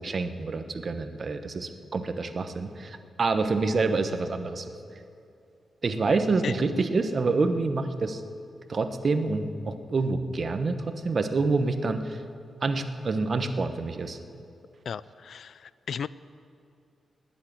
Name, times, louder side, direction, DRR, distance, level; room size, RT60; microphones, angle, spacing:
voice 1, 0.0-4.7 5.8-8.2 8.7-12.2 12.6-14.2, right 3 dB, 40° right, 8 dB, 1.0 m, -27 dB
voice 2, 14.9-16.1, left 7 dB, 65° left, 18 dB, 0.3 m, -35 dB
19.0 x 7.5 x 9.0 m, 2.5 s
wide cardioid pair, 120°, 0 cm